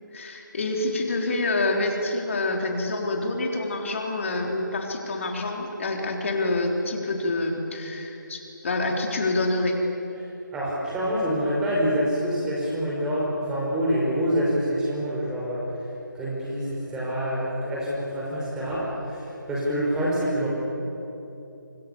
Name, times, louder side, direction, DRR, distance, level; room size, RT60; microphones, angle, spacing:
voice 1, 0.1-9.8, left 2 dB, 40° left, 2 dB, 4.0 m, -27 dB
voice 2, 10.5-15.7 16.1-20.5, equal, 5° right, -5 dB, 5.4 m, -26 dB
29.0 x 26.0 x 7.1 m, 3.0 s
figure-of-eight pair, 160°, 11 cm